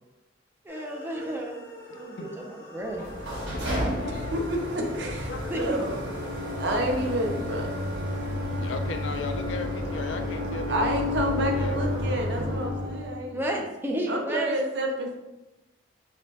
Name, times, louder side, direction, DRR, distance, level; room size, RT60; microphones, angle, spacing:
voice 1, 0.6-1.6 1.9-3.0 5.5-5.8 13.3-14.6, equal, 10° right, 0 dB, 0.5 m, -32 dB
sound 1, 0.7-6.1, equal, 15° left, 0.8 m, -45 dB
sound 2, 2.0-2.6 3.0-5.3 5.7-7.3, left 2 dB, 45° left, 0.7 m, -47 dB
sound 3, 2.9-13.2, left 1 dB, 90° right, 1.0 m, -31 dB
voice 2, 3.3-4.3 5.3-5.7 8.5-12.0, left 3 dB, 85° left, 6 dB, 0.4 m, -37 dB
voice 3, 4.0-5.3 5.6-6.0 6.3-7.8 10.7-13.4 14.1-15.2, right 1 dB, 65° right, 2 dB, 0.6 m, -29 dB
4.9 x 2.1 x 2.8 m, 1.0 s
head